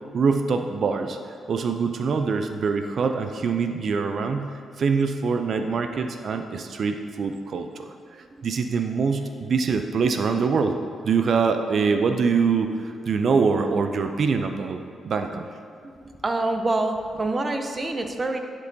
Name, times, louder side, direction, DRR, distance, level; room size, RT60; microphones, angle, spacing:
voice 1, 0.1-1.2 1.5-10.8 11.0-15.5, right 5 dB, 60° right, 7 dB, 0.4 m, -24 dB
voice 2, 15.8-18.4, right 2 dB, 35° right, 5 dB, 0.7 m, -26 dB
11.0 x 4.4 x 2.7 m, 2.3 s
supercardioid pair, 50°, 0 cm